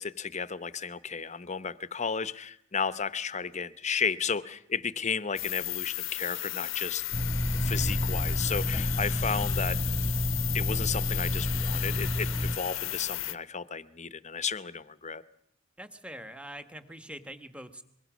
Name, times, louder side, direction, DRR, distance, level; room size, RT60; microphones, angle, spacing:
voice 1, 0.0-7.0 7.6-9.8 10.5-15.2, left 6 dB, 35° left, 15 dB, 0.8 m, -33 dB
sound 1, 5.4-13.3, left 16 dB, 70° left, 0.8 m, -34 dB
sound 2, 7.1-12.6, equal, 10° left, 1.3 m, -30 dB
voice 2, 15.8-17.8, equal, 5° right, 8 dB, 1.3 m, -44 dB
24.5 x 22.0 x 6.2 m, 0.74 s
head